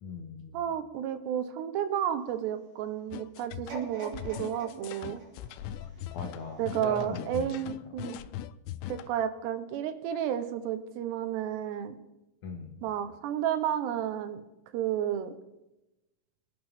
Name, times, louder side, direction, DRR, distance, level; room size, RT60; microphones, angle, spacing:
voice 1, 0.0-0.6 6.1-7.5 12.4-12.8, left 4 dB, 65° left, 3 dB, 2.0 m, -39 dB
voice 2, 0.5-5.2 6.6-8.2 8.9-12.0 12.8-14.4 14.7-15.3, right 10 dB, 85° right, 10 dB, 3.1 m, -32 dB
sound 1, 3.1-9.1, left 12 dB, 85° left, 2.7 m, -40 dB
sound 2, 3.7-6.8 7.3-7.4, right 2 dB, 65° right, 4.8 m, -44 dB
25.5 x 9.5 x 3.6 m, 0.96 s
omnidirectional pair, 4.8 m